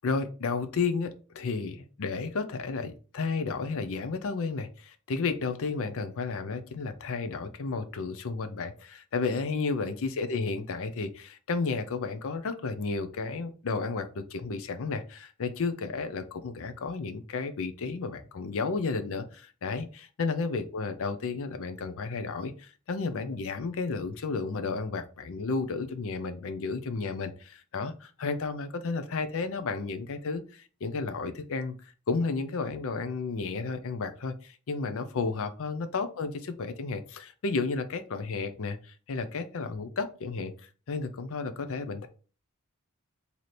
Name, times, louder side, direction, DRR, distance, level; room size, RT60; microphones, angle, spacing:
voice 1, 0.0-42.1, left 4 dB, 65° left, 9 dB, 0.5 m, -32 dB
3.2 x 2.7 x 4.1 m, 0.37 s
head